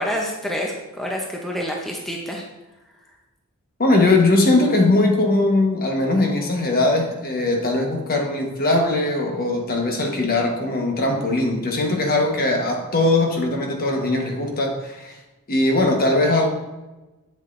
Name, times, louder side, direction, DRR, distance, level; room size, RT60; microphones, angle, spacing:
voice 1, 0.0-2.4, equal, ahead, -1 dB, 0.7 m, -27 dB
voice 2, 3.8-15.2 15.5-16.5, left 2 dB, 45° left, 1 dB, 1.1 m, -20 dB
7.7 x 7.1 x 2.5 m, 1.1 s
head